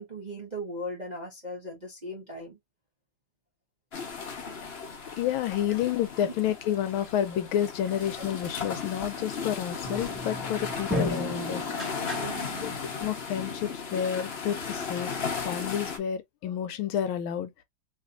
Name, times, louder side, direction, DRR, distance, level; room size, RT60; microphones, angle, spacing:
voice 1, 0.0-2.6 12.1-12.8, equal, 30° right, 0.8 m, -38 dB
sound 1, 3.9-16.0, left 5 dB, 50° left, 0.7 m, -36 dB
voice 2, 5.2-11.7 12.6-15.1 15.4-17.5, left 10 dB, 75° left, 1.4 m, -30 dB
sound 2, 9.8-12.8, left 1 dB, ahead, 1.3 m, -34 dB
3.3 x 3.2 x 2.5 m
omnidirectional pair, 2.4 m